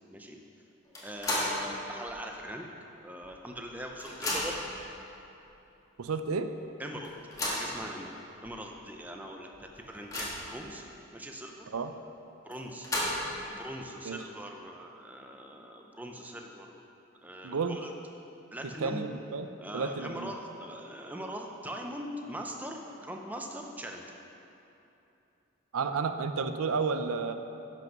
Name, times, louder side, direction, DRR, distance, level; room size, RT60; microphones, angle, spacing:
voice 1, 0.1-0.4 1.0-2.7 3.0-4.6 6.8-7.1 7.4-10.8 11.1-11.7 12.4-12.9 13.4-16.7 17.2-17.9 18.5-19.0 19.6-24.0, equal, 10° right, 2 dB, 0.6 m, -41 dB
sound 1, 0.9-1.7 2.1-2.2 3.2-3.3 3.6-4.7 5.5-5.6 6.0-6.1 7.0-7.7 8.4-8.5 8.9-9.0 9.5-10.6 12.5-13.4, left 1 dB, 15° left, 1.5 m, -33 dB
voice 2, 6.0-6.5 11.7-11.9 14.0-14.2 17.4-17.8 18.8-19.5 19.7-20.3 25.7-27.3, right 4 dB, 90° right, 9 dB, 0.5 m, -31 dB
10.5 x 6.1 x 5.9 m, 2.9 s
head